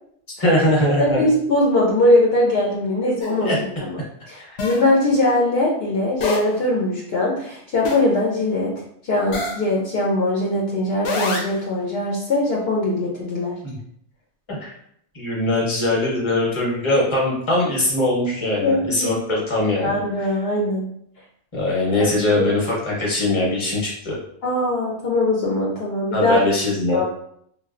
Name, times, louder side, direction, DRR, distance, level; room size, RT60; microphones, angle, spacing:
voice 1, 0.4-1.2 3.4-3.6 4.4-4.5 13.6-13.7 14.6-14.7 15.1-20.3 21.5-24.2 26.1-27.0, left 1 dB, 30° left, -4 dB, 0.9 m, -21 dB
voice 2, 1.0-3.5 3.8-3.9 4.3-8.7 9.0-13.5 18.6-19.2 19.8-20.9 22.0-22.1 22.4-22.5 24.4-26.4 26.9-27.1, left 1 dB, 65° left, -3 dB, 0.8 m, -21 dB
sound 1, 3.2-3.3 4.6-4.8 6.2-6.6 7.8-8.1 9.3-9.7 11.0-11.6, left 3 dB, 90° left, 1.0 m, -26 dB
3.1 x 2.3 x 2.4 m, 0.69 s
omnidirectional pair, 1.2 m